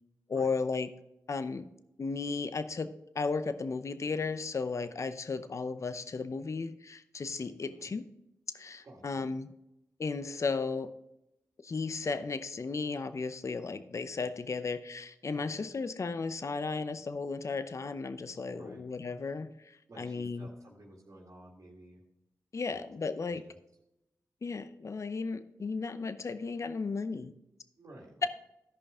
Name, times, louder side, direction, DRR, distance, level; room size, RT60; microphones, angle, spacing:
voice 1, 0.3-0.9 1.3-1.7 2.0-8.0 8.5-9.5 10.0-10.9 11.6-19.5 20.0-20.5 22.5-23.4 24.4-27.3, left 4 dB, 50° left, 12 dB, 0.6 m, -35 dB
voice 2, 7.6-8.0 8.8-9.3 15.3-15.7 18.5-18.8 19.9-22.0 22.7-22.8 23.3-23.6 27.8-28.3, right 1 dB, 55° right, -2 dB, 1.9 m, -53 dB
13.5 x 5.2 x 3.7 m, 0.87 s
cardioid pair, 50°, 7 cm